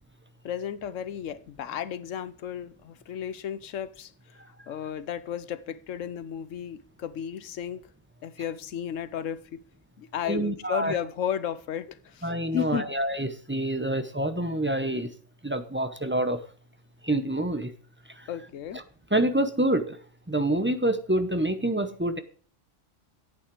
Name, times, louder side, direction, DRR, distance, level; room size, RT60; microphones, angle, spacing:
voice 1, 0.4-4.1 4.7-7.8 8.2-9.6 10.0-12.9 18.3-18.8, left 9 dB, 85° left, 1.1 m, -33 dB
voice 2, 10.3-11.0 12.2-15.1 15.4-16.4 17.0-17.7 18.2-18.3 19.1-20.0 20.3-22.2, right 1 dB, 10° right, 0.8 m, -27 dB
10.0 x 8.6 x 4.8 m
omnidirectional pair, 1.3 m